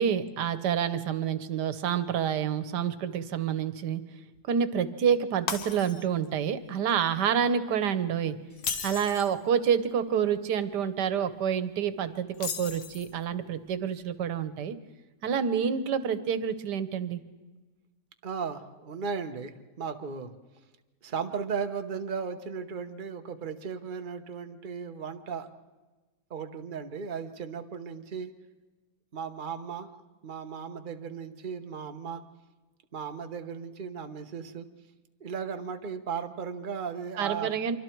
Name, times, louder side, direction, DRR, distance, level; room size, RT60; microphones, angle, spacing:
voice 1, 0.0-4.0 4.5-8.4 8.8-14.7 15.2-17.2 37.2-37.8, right 8 dB, 90° right, 13 dB, 1.6 m, -28 dB
Shatter, 5.5-6.3 6.7-6.9 8.5-9.4 12.3-13.2, left 6 dB, 65° left, 1.7 m, -35 dB
voice 2, 18.2-20.3 21.0-25.5 26.3-28.3 29.1-29.9 30.2-32.2 32.9-34.7 35.2-37.5, right 6 dB, 35° right, 7 dB, 1.1 m, -36 dB
26.0 x 24.0 x 4.6 m, 1.2 s
omnidirectional pair, 1.7 m